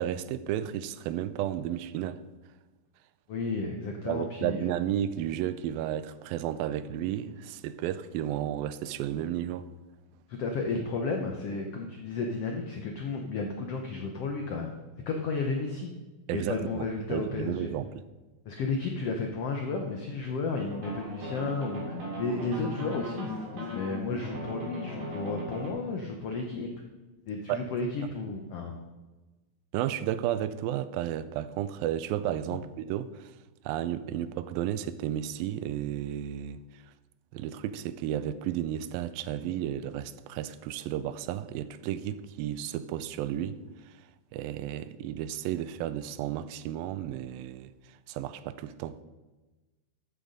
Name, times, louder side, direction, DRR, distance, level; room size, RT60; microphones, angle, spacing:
voice 1, 0.0-2.2 4.1-9.7 16.3-17.9 27.5-27.6 29.7-33.3 33.7-36.6 37.3-43.6 44.3-47.7 48.1-49.0, right 11 dB, 90° right, 2.4 m, -33 dB
voice 2, 3.3-4.7 10.3-14.8 15.1-15.9 16.3-17.7 18.4-26.7 27.3-28.8 32.5-32.6, left 3 dB, 80° left, 1.3 m, -33 dB
sound 1, 20.7-25.7, equal, 65° right, 4.5 m, -38 dB
13.5 x 6.5 x 5.3 m
omnidirectional pair, 4.0 m